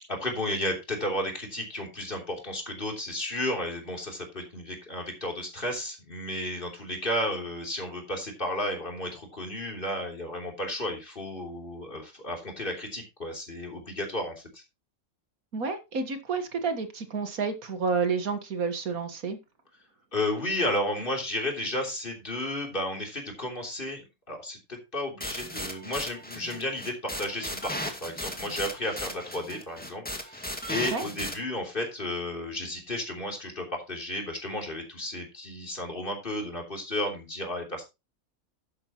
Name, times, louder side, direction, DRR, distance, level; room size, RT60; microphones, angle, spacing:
voice 1, 0.1-14.6 20.1-37.8, left 1 dB, 35° left, 1 dB, 3.5 m, -33 dB
voice 2, 15.5-19.4 30.9-31.1, right 5 dB, 80° right, 8 dB, 2.0 m, -30 dB
sound 1, 25.2-31.3, equal, 5° left, 2.0 m, -36 dB
11.5 x 9.5 x 3.0 m, 0.25 s
omnidirectional pair, 1.5 m